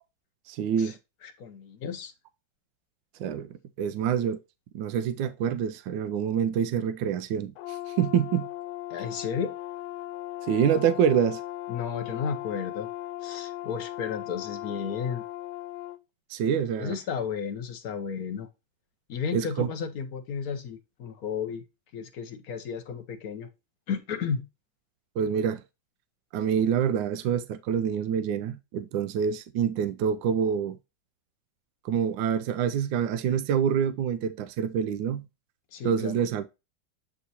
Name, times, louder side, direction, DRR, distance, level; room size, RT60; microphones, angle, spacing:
voice 1, 0.5-1.0 3.2-4.4 4.7-8.5 10.4-11.4 16.3-17.0 19.3-19.7 25.2-25.6 26.3-30.8 31.8-35.3 35.8-36.5, right 8 dB, 80° right, 1.3 m, -26 dB
voice 2, 1.2-2.1 3.8-4.0 8.9-9.5 11.7-12.9 13.2-15.2 16.8-18.5 19.1-21.6 21.9-23.5 23.9-24.4 35.7-36.2, left 6 dB, 55° left, 1.3 m, -33 dB
Brass instrument, 7.6-16.0, left 16 dB, 85° left, 1.4 m, -37 dB
8.3 x 3.1 x 4.1 m
omnidirectional pair, 2.1 m